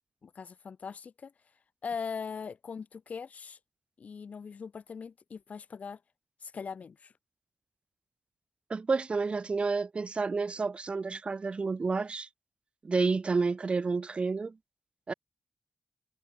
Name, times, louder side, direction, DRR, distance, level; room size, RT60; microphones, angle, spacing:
voice 1, 0.2-1.3 1.8-3.6 4.0-6.0 6.4-7.1, left 6 dB, 65° left, 1.8 m, -40 dB
voice 2, 8.7-12.3 12.8-14.5 15.1-15.2, right 4 dB, 45° right, 0.4 m, -30 dB
supercardioid pair, 40°, 3 cm